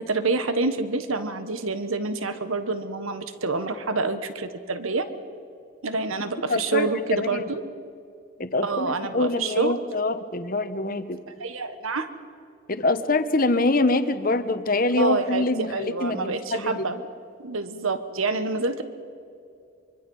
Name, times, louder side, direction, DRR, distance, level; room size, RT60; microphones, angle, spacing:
voice 1, 0.0-5.1 5.8-7.6 8.6-9.7 11.4-12.1 15.0-17.0 17.4-18.8, right 3 dB, 80° right, 10 dB, 1.4 m, -27 dB
voice 2, 6.5-7.4 8.4-11.2 12.7-16.8, left 2 dB, 40° left, 10 dB, 1.1 m, -25 dB
24.5 x 24.5 x 5.6 m, 2.5 s
head